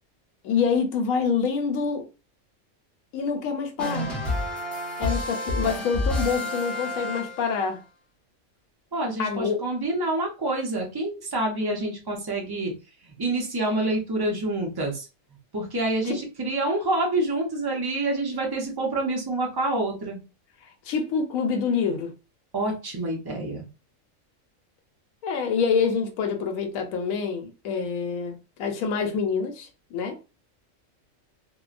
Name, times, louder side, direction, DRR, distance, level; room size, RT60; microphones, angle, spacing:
voice 1, 0.4-2.0 3.1-4.1 5.0-7.8 9.2-9.6 20.8-22.1 25.2-30.2, left 5 dB, 85° left, 1.0 m, -26 dB
sound 1, 3.8-7.7, left 1 dB, ahead, 0.7 m, -29 dB
voice 2, 8.9-12.7 13.1-15.1 15.5-20.2 22.5-23.7, right 2 dB, 40° right, 0.3 m, -27 dB
2.8 x 2.0 x 2.4 m
omnidirectional pair, 1.4 m